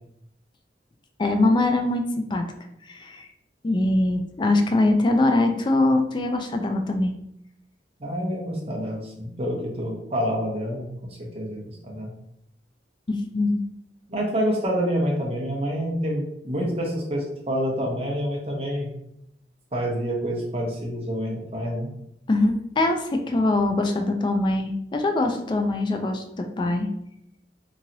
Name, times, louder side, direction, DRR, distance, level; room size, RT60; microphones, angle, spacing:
voice 1, 1.2-2.4 2.9-3.3 3.6-7.1 13.1-13.6 22.3-26.9, left 2 dB, 25° left, 5 dB, 0.3 m, -22 dB
voice 2, 8.0-10.9 11.2-12.1 14.1-18.9 19.7-21.9, equal, 35° right, -2 dB, 0.8 m, -27 dB
3.0 x 2.7 x 2.6 m, 0.77 s
head